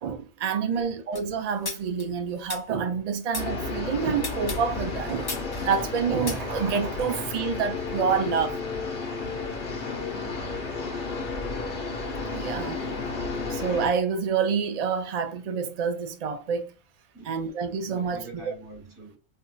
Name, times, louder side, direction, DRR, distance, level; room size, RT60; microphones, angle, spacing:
voice 1, 0.0-5.3 5.6-8.6 12.3-12.8 13.5-16.7 17.3-18.5, right 6 dB, 75° right, 0.3 m, -28 dB
voice 2, 0.7-1.0 10.1-10.6 11.0-11.7 17.1-17.4 17.9-19.2, right 2 dB, 45° right, 1.3 m, -46 dB
sound 1, 1.1-3.5 4.1-7.0, left 3 dB, 35° left, 0.4 m, -37 dB
sound 2, 3.4-13.9, left 4 dB, 50° left, 0.9 m, -32 dB
3.8 x 2.7 x 2.2 m
omnidirectional pair, 1.3 m